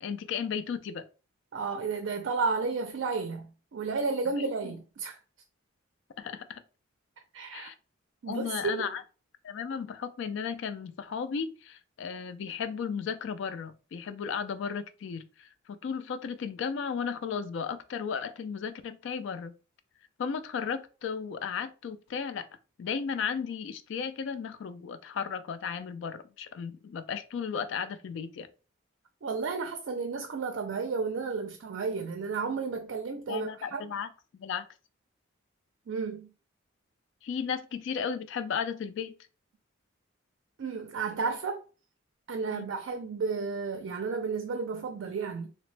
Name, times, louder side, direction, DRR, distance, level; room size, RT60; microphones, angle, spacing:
voice 1, 0.0-1.0 4.3-4.7 6.2-6.6 7.5-7.7 8.3-9.0 9.4-19.5 20.2-22.5 22.8-28.5 33.3-34.1 34.4-34.7 37.2-39.1 42.5-42.7, left 6 dB, 65° left, 0.3 m, -35 dB
voice 2, 1.5-5.2 7.3-7.7 8.2-8.9 29.2-33.9 35.9-36.3 40.6-41.6 42.3-45.5, right 4 dB, 65° right, 0.4 m, -32 dB
2.9 x 2.1 x 3.1 m
head